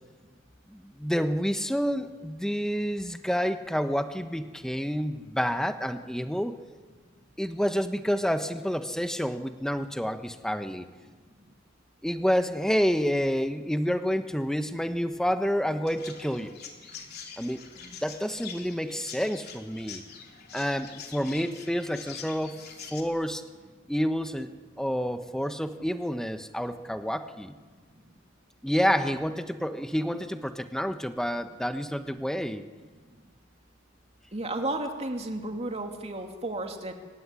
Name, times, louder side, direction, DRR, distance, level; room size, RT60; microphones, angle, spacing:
voice 1, 0.7-6.6 7.4-10.9 12.0-16.5 17.4-17.6 18.0-20.0 20.5-22.5 22.9-23.4 23.9-24.5 24.8-27.5 28.6-32.6, equal, 5° left, 8 dB, 1.1 m, -29 dB
Chirp tweet, 15.9-23.0, left 7 dB, 55° left, 3.3 m, -45 dB
voice 2, 28.8-29.2 34.3-36.9, right 2 dB, 30° right, 3 dB, 2.6 m, -33 dB
26.0 x 16.0 x 10.0 m, 1.4 s
head